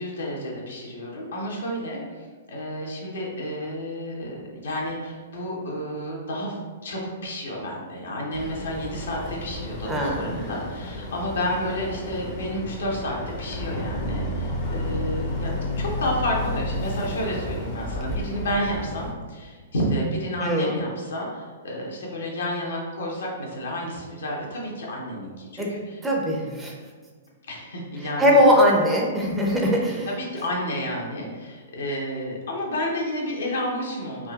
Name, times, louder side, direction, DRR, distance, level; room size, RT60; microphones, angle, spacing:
voice 1, 0.0-26.0 27.5-28.3 30.1-34.3, equal, 75° left, -2 dB, 0.8 m, -31 dB
Boat Water vehicle, 8.3-19.1, left 1 dB, 40° left, 0.6 m, -31 dB
voice 2, 9.9-10.5 20.4-20.7 25.6-25.7 26.0-26.7 28.2-30.1, equal, 10° right, -2 dB, 0.5 m, -20 dB
3.6 x 2.5 x 2.3 m, 1.5 s
hypercardioid pair, 120°, 0 cm